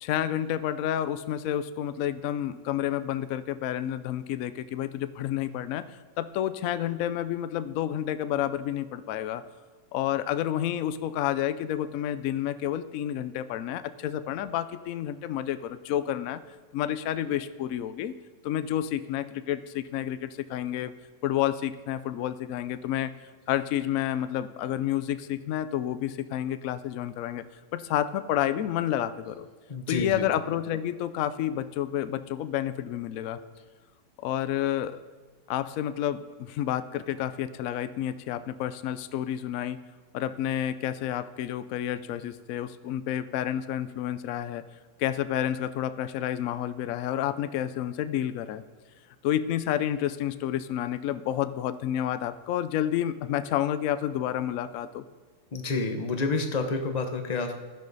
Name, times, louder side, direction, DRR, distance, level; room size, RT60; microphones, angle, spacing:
voice 1, 0.0-9.4 9.9-16.4 16.7-18.1 18.4-20.9 21.2-23.1 23.5-27.4 27.7-29.5 29.9-33.4 34.2-35.0 35.5-39.8 40.1-44.6 45.0-48.6 49.2-55.0, left 11 dB, 90° left, 12 dB, 0.7 m, -30 dB
voice 2, 29.7-30.3 55.5-57.5, left 3 dB, 35° left, 5 dB, 0.6 m, -29 dB
15.5 x 11.5 x 4.0 m, 1.5 s
omnidirectional pair, 2.1 m